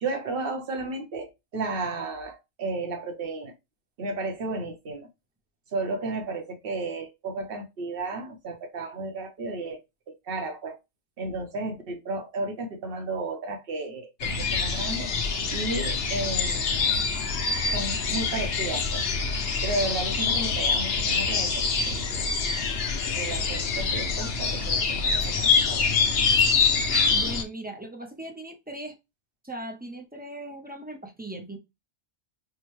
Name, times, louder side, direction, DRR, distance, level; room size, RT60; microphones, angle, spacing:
voice 1, 0.0-3.5 4.0-5.1 5.7-9.8 10.1-10.8 11.2-15.1 15.5-17.0 17.7-19.1 19.6-22.3 23.1-25.9, right 3 dB, 60° right, 1.0 m, -33 dB
sound 1, 14.2-27.4, left 5 dB, 65° left, 0.9 m, -25 dB
voice 2, 27.1-28.9 29.4-31.6, right 2 dB, 10° right, 0.5 m, -38 dB
4.7 x 2.1 x 3.0 m
omnidirectional pair, 1.1 m